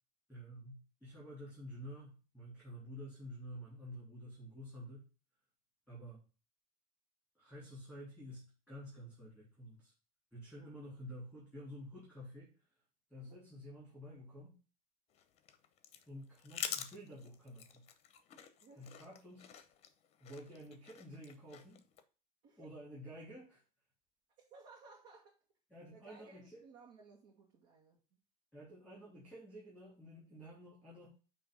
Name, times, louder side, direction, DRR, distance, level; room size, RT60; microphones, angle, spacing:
voice 1, 0.3-5.1 5.9-6.2 7.3-9.9 10.3-12.5 13.1-14.5 16.1-17.9 18.8-19.5 20.2-21.8 22.6-23.6 25.7-26.6 28.5-31.1, equal, 5° right, 3.2 m, -50 dB
sound 1, 15.1-22.0, left 9 dB, 30° left, 0.8 m, -48 dB
voice 2, 18.6-18.9 22.4-22.7 24.4-25.3 25.9-28.0, right 4 dB, 55° right, 1.9 m, -59 dB
8.7 x 3.1 x 5.4 m
supercardioid pair, 145°, 21 cm